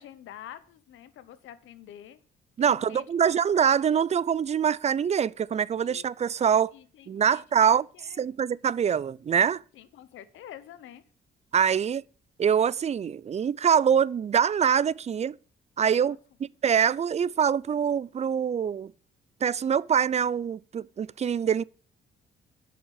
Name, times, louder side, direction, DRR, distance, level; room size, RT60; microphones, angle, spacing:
voice 1, 0.0-2.2 2.6-3.3 5.8-6.0 6.7-8.2 9.7-11.0 16.0-16.2, left 11 dB, 80° left, 1.1 m, -48 dB
voice 2, 2.6-6.7 7.1-7.9 8.2-9.6 11.5-12.0 12.4-15.4 15.8-18.9 19.4-21.6, right 8 dB, 35° right, 0.4 m, -24 dB
8.7 x 6.1 x 7.2 m
cardioid pair, 90°, 20 cm